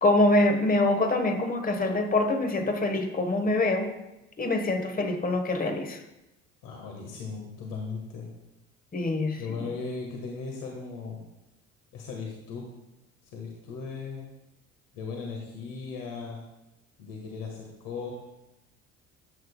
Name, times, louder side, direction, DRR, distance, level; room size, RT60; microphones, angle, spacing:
voice 1, 0.0-3.9 4.4-6.0 8.9-9.4, left 2 dB, 25° left, 5 dB, 1.3 m, -25 dB
voice 2, 6.6-8.3 9.3-11.2 11.9-12.6 13.2-14.3 14.9-16.4 17.0-18.1, left 4 dB, 60° left, -1 dB, 1.6 m, -37 dB
12.5 x 8.1 x 2.3 m, 0.92 s
figure-of-eight pair, 60°, 37 cm